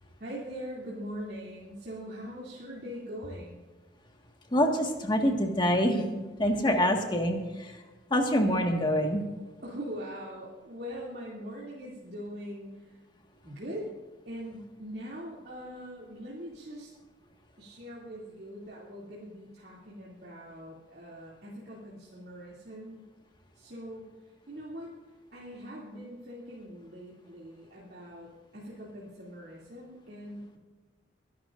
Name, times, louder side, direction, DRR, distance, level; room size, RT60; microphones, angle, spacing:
voice 1, 0.2-3.6 9.6-13.0 13.4-13.9 14.2-16.9 17.6-23.0 23.5-24.9 25.3-30.6, equal, 60° right, -6 dB, 2.7 m, -42 dB
voice 2, 4.5-6.1 6.4-7.7 8.1-9.2, equal, 25° left, 3 dB, 1.7 m, -25 dB
23.5 x 11.0 x 2.6 m, 1.3 s
head